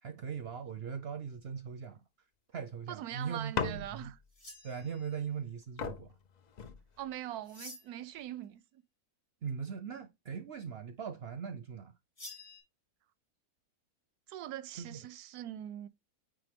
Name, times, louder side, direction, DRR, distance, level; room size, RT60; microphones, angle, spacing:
voice 1, 0.0-2.0 2.5-4.1 4.6-6.1 9.4-11.9 14.8-15.0, right 7 dB, 60° right, 0.6 m, -40 dB
voice 2, 2.9-4.1 7.0-8.8 14.3-15.9, right 12 dB, 85° right, 1.1 m, -42 dB
sound 1, 3.5-4.3 5.4-5.5 5.8-7.3 8.0-8.4, left 5 dB, 85° left, 0.3 m, -39 dB
sound 2, 4.3-5.3 7.4-8.1 12.2-12.6, left 2 dB, 65° left, 4.7 m, -50 dB
9.1 x 3.4 x 3.5 m
omnidirectional pair, 1.6 m